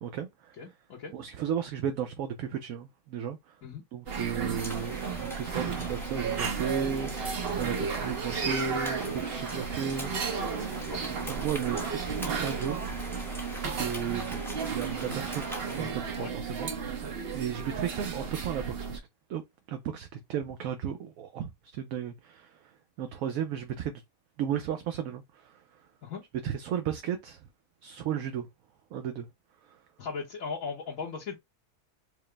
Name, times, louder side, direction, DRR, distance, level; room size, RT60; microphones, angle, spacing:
voice 1, 0.0-0.6 1.1-3.6 3.9-12.8 13.6-14.4 14.7-15.4 15.7-19.0 19.3-19.4 19.7-22.7 23.0-24.0 24.4-25.6 26.4-27.5 27.8-28.5 28.9-29.3 29.6-29.8, right 8 dB, 75° right, 1.0 m, -34 dB
voice 2, 0.6-1.1 3.6-3.8 10.8-11.1 16.2-16.3 26.0-26.2 30.0-31.3, left 5 dB, 65° left, 1.4 m, -38 dB
sound 1, 4.1-19.0, right 5 dB, 50° right, 0.9 m, -34 dB
sound 2, 4.6-15.9, left 1 dB, ahead, 0.7 m, -42 dB
4.8 x 2.0 x 3.2 m
omnidirectional pair, 1.5 m